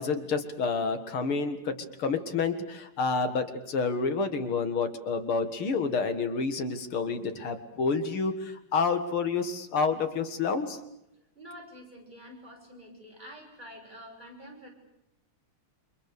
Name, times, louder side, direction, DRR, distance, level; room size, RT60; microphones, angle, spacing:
voice 1, 0.0-8.3 8.7-10.8, left 4 dB, 90° left, 8 dB, 2.7 m, -29 dB
voice 2, 11.4-14.7, equal, 20° right, -1 dB, 7.0 m, -47 dB
29.0 x 26.0 x 6.8 m, 0.81 s
omnidirectional pair, 2.3 m